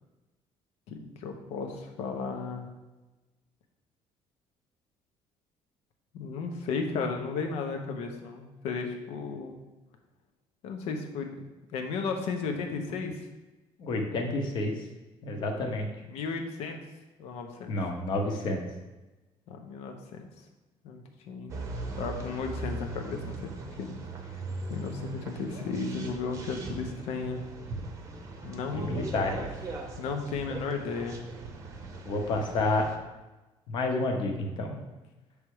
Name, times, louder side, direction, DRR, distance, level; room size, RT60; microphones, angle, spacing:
voice 1, 0.9-2.7 6.1-9.6 10.6-13.2 16.1-16.8 17.2-17.7 19.5-20.3 20.8-21.6 22.0-23.5 23.8-23.9 24.7-27.4 28.4-28.9 30.0-31.2, left 4 dB, 75° left, 4 dB, 1.0 m, -34 dB
voice 2, 13.8-14.7 15.2-15.9 17.7-18.6 28.7-29.4 32.1-32.9 33.7-34.8, left 2 dB, 45° left, 3 dB, 1.0 m, -29 dB
sound 1, 21.5-33.0, right 3 dB, 30° right, 0.7 m, -39 dB
7.4 x 3.4 x 4.8 m, 1.1 s
cardioid pair, 180°, 11 cm